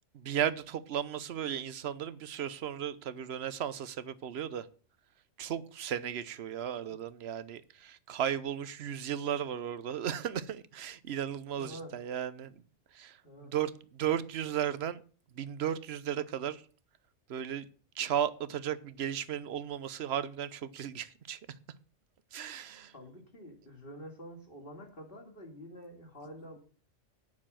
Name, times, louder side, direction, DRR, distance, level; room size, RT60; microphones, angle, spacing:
voice 1, 0.1-4.7 5.4-12.5 12.9-13.2 13.5-15.0 15.3-16.6 17.3-17.7 17.9-21.4 22.3-22.9, right 9 dB, 60° right, 1.0 m, -35 dB
voice 2, 11.5-11.9 13.2-13.5 22.9-26.6, equal, 45° left, 3.0 m, -47 dB
9.7 x 6.7 x 7.4 m
omnidirectional pair, 1.3 m